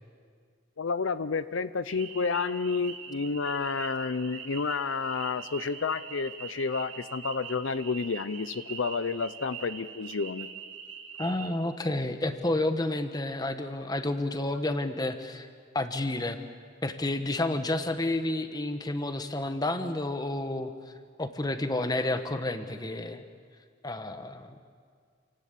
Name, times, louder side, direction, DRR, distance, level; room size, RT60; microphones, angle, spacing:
voice 1, 0.8-10.5, left 4 dB, 75° left, 14 dB, 0.6 m, -30 dB
sound 1, 1.9-11.5, right 7 dB, 70° right, 2.7 m, -43 dB
voice 2, 11.2-15.5 15.7-16.4 16.8-20.7 21.2-23.2 23.8-24.6, left 2 dB, 20° left, 8 dB, 1.2 m, -30 dB
28.5 x 18.0 x 8.3 m, 2.1 s
head